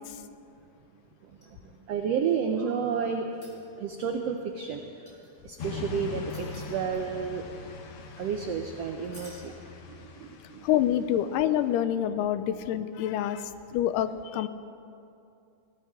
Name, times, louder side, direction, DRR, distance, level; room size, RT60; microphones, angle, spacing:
voice 1, 1.2-3.3 3.8-4.8 5.4-7.4 8.2-9.5 9.9-10.6, right 6 dB, 85° right, 4 dB, 1.4 m, -31 dB
sound 1, 1.3-2.0 3.3-4.0 5.1-5.6 6.3-7.2 9.0-9.5 11.7-11.8, left 1 dB, 25° left, 5.0 m, -52 dB
sound 2, 5.6-11.7, left 5 dB, 65° left, 1.4 m, -42 dB
voice 2, 10.6-14.5, left 11 dB, 85° left, 11 dB, 2.2 m, -27 dB
22.0 x 16.5 x 3.6 m, 2.6 s
omnidirectional pair, 3.8 m